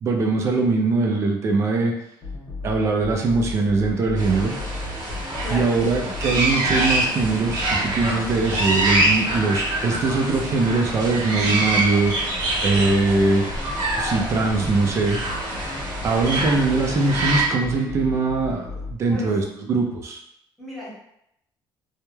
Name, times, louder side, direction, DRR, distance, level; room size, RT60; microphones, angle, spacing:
voice 1, 0.0-1.9 2.6-4.5 5.5-12.1 12.6-13.4 14.0-15.2 16.0-20.2, right 3 dB, 35° right, 2 dB, 0.4 m, -21 dB
sound 1, 2.2-18.9, left 2 dB, 50° left, 0.9 m, -35 dB
sound 2, 4.2-17.4, right 2 dB, 60° right, 0.8 m, -25 dB
voice 2, 5.4-6.2 12.7-13.0 19.1-19.4 20.6-20.9, left 1 dB, ahead, -8 dB, 0.8 m, -35 dB
3.0 x 2.1 x 2.2 m, 0.77 s
cardioid pair, 175°, 9 cm